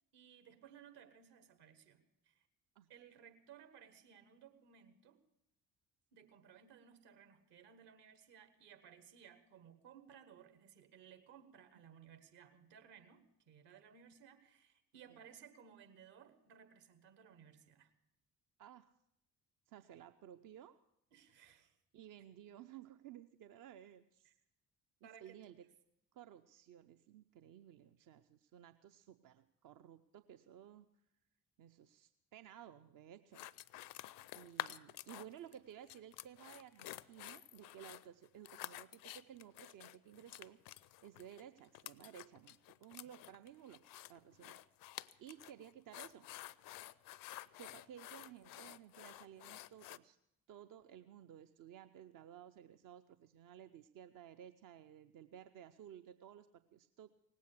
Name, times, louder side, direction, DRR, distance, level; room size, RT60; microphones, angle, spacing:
voice 1, 0.1-2.5 2.9-5.2 6.1-17.9 21.1-21.8 24.2-24.3 25.0-25.5 43.0-43.1, right 8 dB, 60° right, 8 dB, 1.7 m, -60 dB
voice 2, 18.6-18.9 19.7-20.8 21.9-24.3 25.0-25.6 26.1-30.9 31.6-33.5 33.8-33.9 34.3-43.8 44.1-44.6 44.9-46.3 47.6-50.2 50.5-57.1, right 10 dB, 45° right, 9 dB, 0.7 m, -56 dB
sound 1, 33.3-35.5 35.9-50.0, left 16 dB, 45° left, 0.5 m, -50 dB
18.5 x 8.4 x 8.2 m, 0.81 s
figure-of-eight pair, 45°, 47 cm